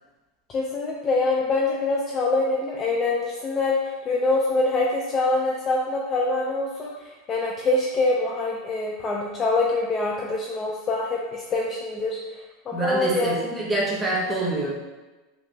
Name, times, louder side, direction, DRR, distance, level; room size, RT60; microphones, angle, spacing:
voice 1, 0.5-6.9 7.3-12.2 12.7-13.3, left 2 dB, 20° left, -2 dB, 0.3 m, -24 dB
voice 2, 12.7-14.7, right 2 dB, 5° right, -6 dB, 0.8 m, -26 dB
5.7 x 2.2 x 2.6 m, 1.2 s
supercardioid pair, 165°, 0 cm